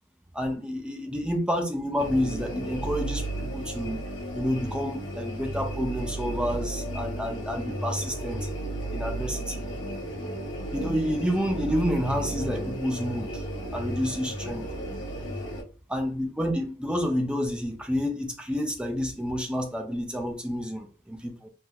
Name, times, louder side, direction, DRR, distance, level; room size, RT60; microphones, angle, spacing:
voice 1, 0.3-4.0 4.3-8.5 8.9-9.6 10.7-13.4 13.7-14.7 15.9-21.5, equal, 5° right, 0.5 m, -29 dB
sound 1, 2.0-15.6, right 1 dB, 70° left, 1.0 m, -34 dB
3.4 x 2.7 x 2.2 m
head